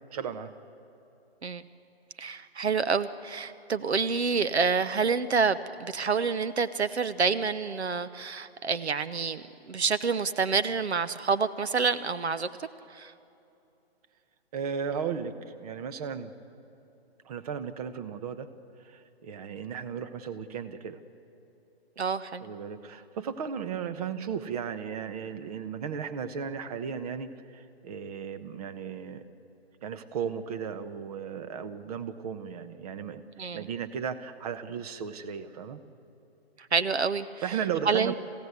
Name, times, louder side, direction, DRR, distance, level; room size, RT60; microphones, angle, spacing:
voice 1, 0.1-0.5 14.5-16.3 17.2-18.5 18.8-21.0 22.4-29.2 29.8-35.8 37.4-38.2, right 7 dB, 35° right, 10 dB, 1.1 m, -35 dB
voice 2, 2.2-12.5 12.9-13.1 22.0-22.4 33.4-33.6 36.7-37.3 37.9-38.2, right 5 dB, 85° right, 13 dB, 0.9 m, -28 dB
27.0 x 16.5 x 8.3 m, 2.8 s
hypercardioid pair, 140°, 32 cm